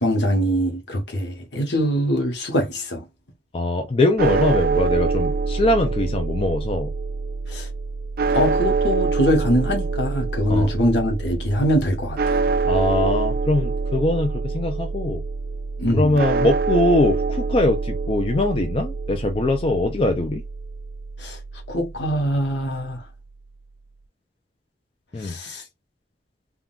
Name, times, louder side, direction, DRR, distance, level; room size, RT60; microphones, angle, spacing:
voice 1, 0.0-3.0 7.5-7.7 8.3-12.4 15.8-16.2 21.2-21.4 21.7-23.0 25.2-25.6, equal, 75° left, 1.1 m, -23 dB
voice 2, 3.5-6.9 10.5-10.7 12.6-15.2 15.9-20.4 25.1-25.3, left 2 dB, 30° left, 0.4 m, -22 dB
sound 1, 4.2-22.4, right 4 dB, 50° right, 0.3 m, -25 dB
3.6 x 2.2 x 2.3 m
head